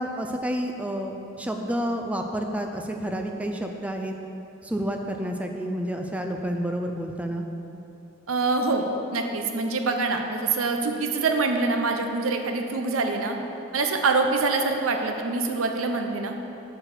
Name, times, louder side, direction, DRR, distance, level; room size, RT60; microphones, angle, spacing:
voice 1, 0.0-4.1 4.6-7.5, equal, 5° right, 3 dB, 0.4 m, -29 dB
voice 2, 8.3-13.4 13.7-16.3, right 3 dB, 90° right, 4 dB, 0.7 m, -25 dB
7.7 x 4.5 x 6.6 m, 3.0 s
head